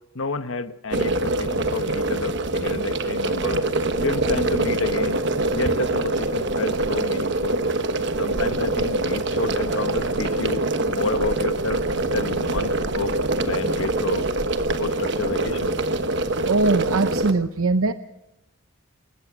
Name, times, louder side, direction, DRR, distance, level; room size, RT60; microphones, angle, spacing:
voice 1, 0.1-3.6 4.0-5.2 5.5-7.6 8.2-11.8 12.1-13.1 13.5-14.3 14.8-15.8, left 3 dB, 70° left, 11 dB, 1.1 m, -30 dB
sound 1, 0.9-17.3, right 2 dB, 55° right, 1.3 m, -24 dB
voice 2, 16.5-17.9, right 3 dB, 80° right, 11 dB, 0.8 m, -21 dB
28.5 x 15.0 x 6.2 m, 0.96 s
head